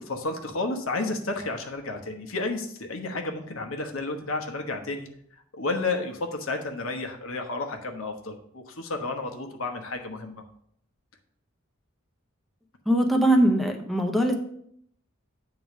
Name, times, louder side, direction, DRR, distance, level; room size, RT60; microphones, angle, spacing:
voice 1, 0.0-5.1 5.5-10.4, left 3 dB, 85° left, 4 dB, 1.1 m, -31 dB
voice 2, 12.9-14.3, right 1 dB, ahead, 2 dB, 0.7 m, -21 dB
8.3 x 3.9 x 6.0 m, 0.69 s
head